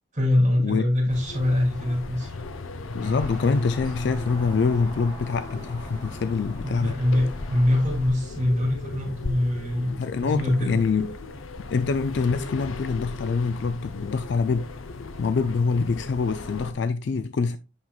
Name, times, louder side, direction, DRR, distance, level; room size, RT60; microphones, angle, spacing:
voice 1, 0.1-2.4 6.6-10.8, left 1 dB, 35° right, 2.9 m, -24 dB
sound 1, 1.1-16.7, left 3 dB, 80° left, 0.7 m, -36 dB
voice 2, 2.9-7.0 10.0-11.1 11.7-14.7 15.2-17.6, left 4 dB, 55° left, 0.3 m, -25 dB
Guitar, 3.0-11.7, left 2 dB, 35° left, 2.6 m, -49 dB
sound 2, 3.0-8.1, left 1 dB, 20° left, 2.1 m, -42 dB
8.5 x 5.9 x 2.3 m
head